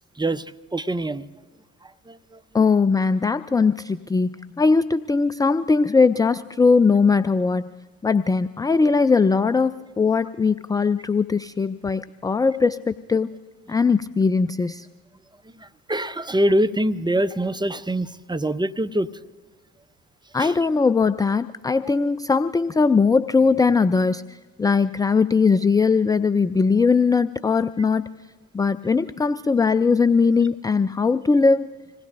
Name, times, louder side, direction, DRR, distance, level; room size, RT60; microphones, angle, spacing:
voice 1, 0.2-1.3 1.8-2.4 15.6-19.1 20.4-20.6, right 1 dB, 10° right, 14 dB, 0.8 m, -24 dB
voice 2, 2.5-7.7 8.0-13.3 13.7-14.9 20.3-28.1 28.5-31.7, left 4 dB, 10° left, 14 dB, 0.4 m, -20 dB
26.5 x 19.0 x 2.6 m, 1.4 s
hypercardioid pair, 50°, 42 cm